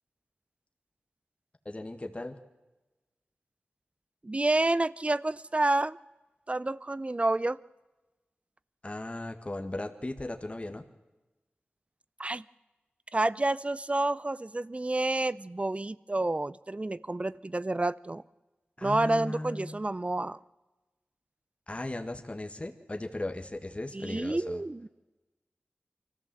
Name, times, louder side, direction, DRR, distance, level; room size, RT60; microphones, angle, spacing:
voice 1, 1.7-2.4 8.8-10.9 18.8-19.8 21.7-24.6, left 1 dB, 30° left, 4 dB, 1.8 m, -37 dB
voice 2, 4.2-6.0 6.5-7.6 12.2-12.4 13.1-18.2 18.8-20.4 23.9-24.9, right 2 dB, 35° right, 18 dB, 0.6 m, -29 dB
24.0 x 14.5 x 7.7 m, 1.1 s
cardioid pair, 45°, 4 cm